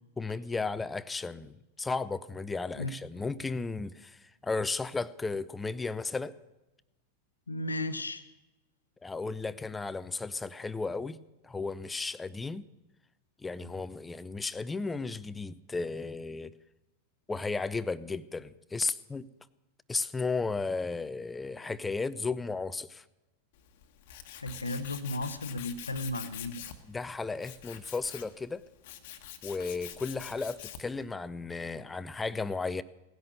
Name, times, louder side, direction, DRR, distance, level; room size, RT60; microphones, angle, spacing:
voice 1, 0.2-6.3 9.0-11.2 11.4-12.6 13.4-16.5 17.3-19.3 19.9-23.0 26.9-28.6 29.4-32.8, left 4 dB, 10° left, 0.5 m, -34 dB
voice 2, 7.5-8.2 24.4-26.6, left 2 dB, 80° left, 0.9 m, -34 dB
Tools, 23.5-31.0, left 10 dB, 50° left, 1.2 m, -46 dB
17.5 x 10.5 x 6.7 m
figure-of-eight pair, 90°, 0 cm